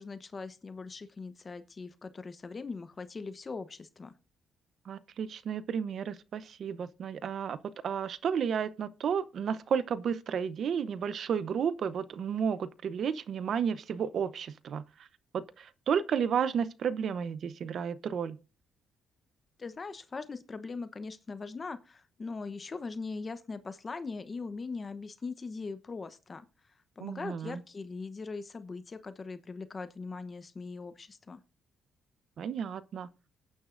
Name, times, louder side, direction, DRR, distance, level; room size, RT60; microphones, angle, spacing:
voice 1, 0.0-4.1 19.6-26.5 27.0-31.4, left 4 dB, 35° left, 0.9 m, -40 dB
voice 2, 4.8-7.6 7.8-15.1 15.3-18.4 27.0-27.6 32.4-33.1, right 7 dB, 60° right, 0.8 m, -32 dB
19.0 x 9.8 x 2.6 m
cardioid pair, 90°, 0 cm